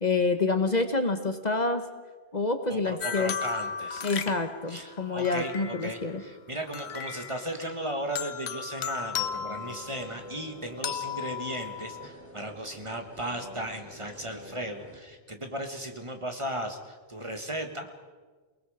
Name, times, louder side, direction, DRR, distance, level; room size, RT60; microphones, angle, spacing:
voice 1, 0.0-1.8 2.3-3.3 4.0-6.2, left 3 dB, 40° left, 7 dB, 1.2 m, -27 dB
voice 2, 2.7-4.1 4.7-18.1, right 1 dB, 30° right, 5 dB, 1.7 m, -36 dB
sound 1, 3.0-6.1 6.7-7.7 8.1-10.3 10.8-12.1, left 7 dB, 80° left, 1.2 m, -36 dB
sound 2, 9.1-15.0, equal, 10° right, 3.2 m, -47 dB
29.0 x 19.5 x 5.0 m, 1.4 s
omnidirectional pair, 1.1 m